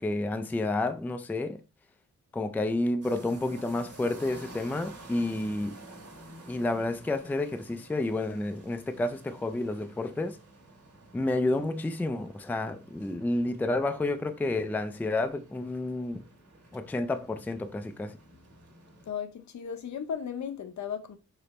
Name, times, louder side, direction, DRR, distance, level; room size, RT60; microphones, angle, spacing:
voice 1, 0.0-1.6 2.3-5.8 6.5-10.4 11.1-16.2 16.7-18.2, left 2 dB, 5° left, 0.3 m, -30 dB
sound 1, 3.0-19.1, right 2 dB, 55° right, 1.5 m, -51 dB
voice 2, 19.1-21.2, left 8 dB, 70° left, 0.7 m, -35 dB
5.0 x 2.0 x 4.1 m
cardioid pair, 85°, 30 cm